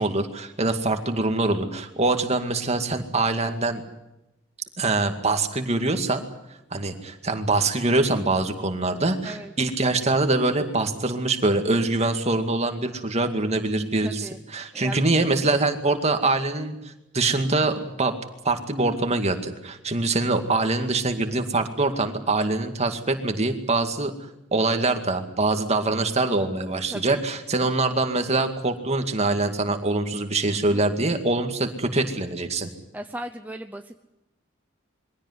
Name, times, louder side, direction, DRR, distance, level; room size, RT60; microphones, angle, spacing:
voice 1, 0.0-3.8 4.8-6.3 6.7-18.1 18.4-24.1 24.5-32.7, right 2 dB, 35° right, 6 dB, 2.2 m, -24 dB
voice 2, 13.8-14.4 14.7-15.1 26.9-27.2 30.5-30.8 32.9-34.0, right 1 dB, 10° right, 5 dB, 0.8 m, -37 dB
23.0 x 16.5 x 9.7 m, 0.91 s
head